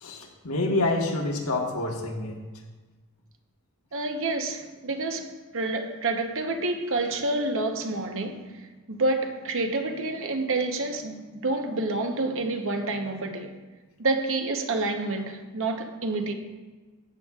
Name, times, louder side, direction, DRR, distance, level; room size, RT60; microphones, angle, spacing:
voice 1, 0.0-2.4, left 2 dB, 75° left, 1.4 m, -27 dB
voice 2, 3.9-8.6 8.9-13.6 14.0-16.3, right 2 dB, 60° right, 0.9 m, -28 dB
13.5 x 8.9 x 2.4 m
head